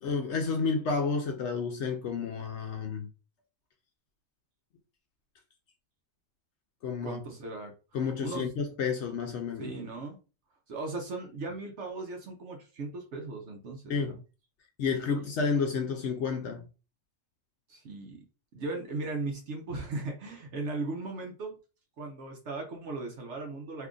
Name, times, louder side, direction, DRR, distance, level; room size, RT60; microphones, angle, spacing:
voice 1, 0.0-3.1 6.8-7.2 7.9-9.7 13.9-14.2 14.8-16.6, left 5 dB, 65° left, 0.8 m, -30 dB
voice 2, 7.0-7.7 8.2-8.5 9.6-10.2 10.7-14.2 14.8-15.2 17.7-18.2 18.5-21.6 22.0-23.9, right 3 dB, 65° right, 1.0 m, -37 dB
2.8 x 2.4 x 3.7 m
omnidirectional pair, 1.4 m